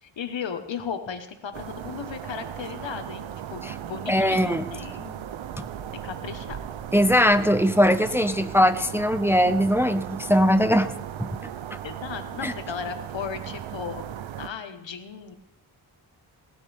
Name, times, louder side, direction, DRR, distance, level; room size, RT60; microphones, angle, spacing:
voice 1, 0.0-5.4 5.9-6.6 11.8-14.1 14.4-15.4, left 7 dB, 70° left, 8 dB, 1.6 m, -36 dB
sound 1, 1.5-14.5, right 10 dB, 80° right, 0.9 m, -37 dB
voice 2, 4.1-4.7 6.9-10.9 11.2-11.3 12.4-12.5, equal, 5° right, 11 dB, 0.7 m, -20 dB
19.0 x 12.0 x 3.6 m, 0.98 s
cardioid pair, 70°, 46 cm